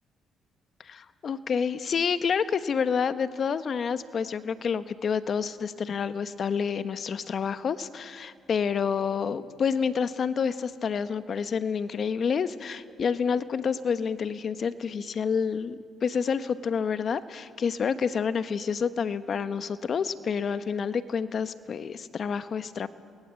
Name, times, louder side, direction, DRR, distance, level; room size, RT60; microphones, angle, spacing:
voice 1, 0.8-22.9, left 6 dB, 55° left, 12 dB, 1.2 m, -28 dB
28.5 x 20.0 x 8.4 m, 2.1 s
supercardioid pair, 70°, 0 cm